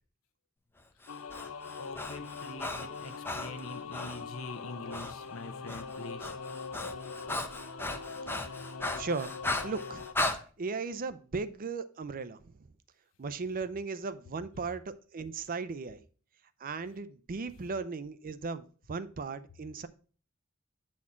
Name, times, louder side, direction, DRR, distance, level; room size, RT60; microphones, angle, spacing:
Breathing, 1.0-4.2 4.9-5.1 5.4-10.4, left 2 dB, 10° left, 0.6 m, -37 dB
sound 1, 1.1-10.1, left 5 dB, 90° left, 0.5 m, -42 dB
voice 1, 1.8-6.3, left 2 dB, 75° left, 0.9 m, -44 dB
voice 2, 9.0-9.3 9.6-10.1 10.6-12.5 13.2-16.0 16.6-19.9, right 4 dB, 40° right, 0.5 m, -37 dB
8.3 x 4.3 x 4.3 m
head